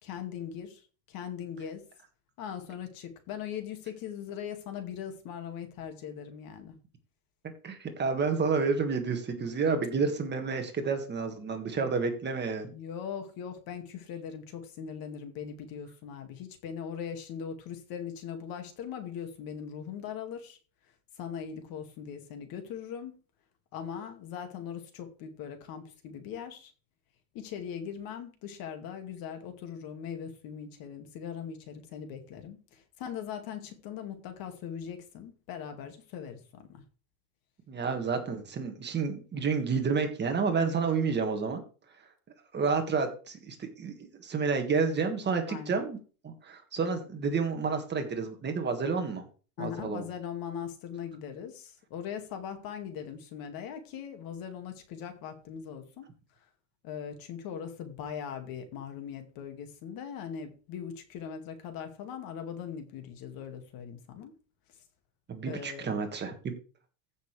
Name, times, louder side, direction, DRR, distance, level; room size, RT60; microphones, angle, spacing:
voice 1, 0.0-0.8 1.1-1.8 2.4-6.7 12.7-20.6 21.2-23.2 23.7-26.7 27.3-36.8 45.5-45.7 49.6-56.1 56.8-64.3 65.4-66.0, left 8 dB, 45° left, 6 dB, 2.2 m, -40 dB
voice 2, 7.6-12.7 37.7-41.6 42.5-43.9 44.2-46.0 46.2-49.3 49.6-50.0 65.3-66.5, right 5 dB, 20° right, 5 dB, 1.8 m, -30 dB
15.0 x 6.4 x 3.3 m, 0.36 s
supercardioid pair, 130°, 47 cm